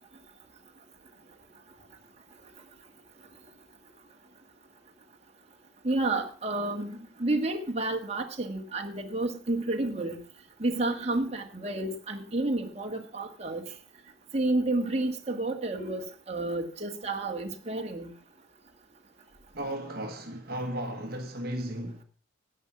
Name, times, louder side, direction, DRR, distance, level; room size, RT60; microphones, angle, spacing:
voice 1, 5.8-6.9 7.2-10.2 10.6-13.6 14.3-18.1, right 2 dB, 35° right, 1.7 m, -30 dB
voice 2, 6.6-7.1 19.5-22.0, right 1 dB, 50° right, 1.4 m, -35 dB
11.0 x 9.1 x 5.8 m
head